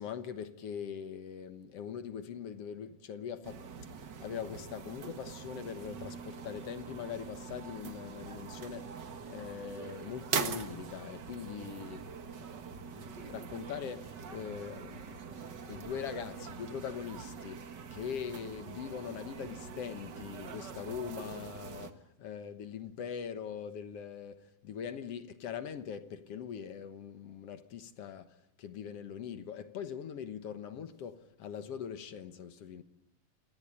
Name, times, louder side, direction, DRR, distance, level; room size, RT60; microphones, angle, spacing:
voice 1, 0.0-3.6 4.2-8.9 9.3-12.1 12.9-32.8, left 8 dB, 60° left, 1.9 m, -42 dB
sound 1, 3.4-21.9, right 6 dB, 45° right, 1.5 m, -43 dB
28.0 x 18.5 x 10.0 m
omnidirectional pair, 3.7 m